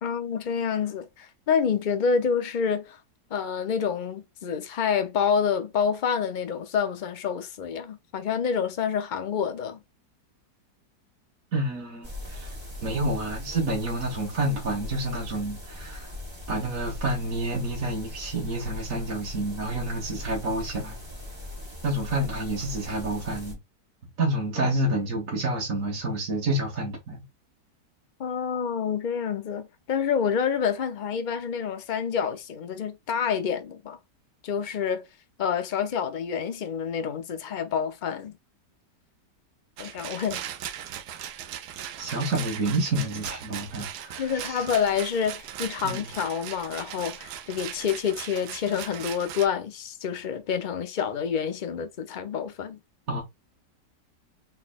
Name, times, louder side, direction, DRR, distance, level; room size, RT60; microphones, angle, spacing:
voice 1, 0.0-3.0 3.3-9.8 24.6-24.7 28.2-34.0 34.4-35.1 35.4-38.4 39.8-40.4 44.2-52.8, left 7 dB, 65° left, 0.4 m, -28 dB
voice 2, 11.5-12.6 12.8-16.1 16.5-21.0 21.8-23.6 24.2-27.2 42.0-44.6 45.8-46.1 53.1-53.2, right 1 dB, 50° right, 1.8 m, -29 dB
sound 1, 12.0-23.5, left 1 dB, 15° right, 1.4 m, -40 dB
Rattle, 39.8-49.5, right 10 dB, 70° right, 1.1 m, -38 dB
4.3 x 4.0 x 2.4 m
omnidirectional pair, 1.9 m